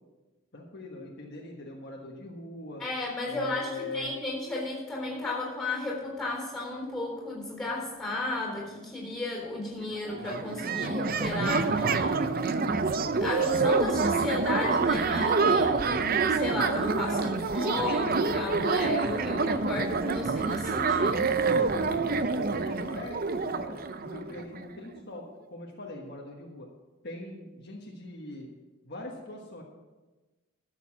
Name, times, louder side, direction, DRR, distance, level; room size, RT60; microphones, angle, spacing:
voice 1, 0.5-2.8 3.3-4.2 21.5-22.2 22.5-26.7 27.0-28.5 28.8-29.6, left 2 dB, 50° left, -1 dB, 1.4 m, -42 dB
voice 2, 2.8-12.2 13.2-21.3, left 2 dB, 5° left, -2 dB, 3.6 m, -34 dB
sound 1, 9.8-9.9 10.1-24.7, right 4 dB, 40° right, 0.5 m, -27 dB
12.5 x 7.1 x 6.0 m, 1.2 s
head